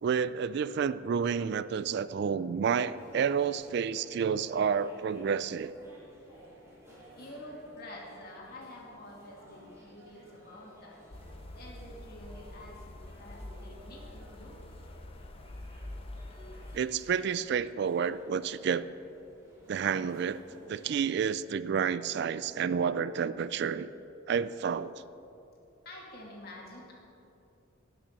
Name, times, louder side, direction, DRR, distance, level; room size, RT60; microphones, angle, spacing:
voice 1, 0.0-5.7 16.7-18.9 19.7-23.9 24.3-24.9, right 7 dB, 55° right, 16 dB, 0.3 m, -30 dB
sound 1, 2.9-21.0, equal, 15° right, 2.9 m, -56 dB
voice 2, 6.9-11.0 11.5-14.6 25.8-26.9, left 1 dB, 50° left, -2 dB, 2.5 m, -48 dB
sound 2, 11.1-16.8, left 1 dB, 30° left, 0.6 m, -46 dB
17.5 x 6.0 x 6.7 m, 2.8 s
head